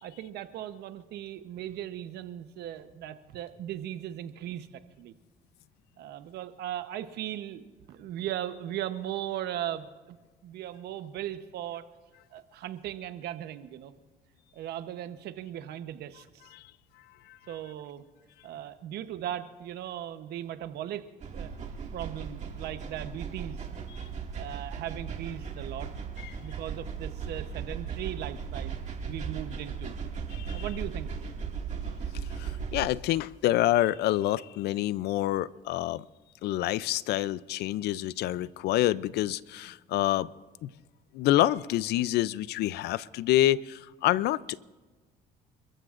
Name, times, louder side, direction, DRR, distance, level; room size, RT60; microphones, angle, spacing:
voice 1, 0.0-4.7 5.0-5.1 6.0-10.2 10.4-11.8 12.3-13.9 14.5-16.5 17.5-18.0 18.4-21.5 21.9-23.7 24.4-25.9 26.4-28.8 29.1-30.0 30.5-31.1, right 11 dB, 75° right, 0.9 m, -38 dB
sound 1, 21.2-32.8, right 6 dB, 45° right, 2.1 m, -37 dB
voice 2, 30.3-30.7 32.4-36.1 36.4-40.3 40.6-40.7 41.1-44.6, left 14 dB, 75° left, 0.5 m, -27 dB
28.5 x 14.5 x 2.5 m
cardioid pair, 110°, 17 cm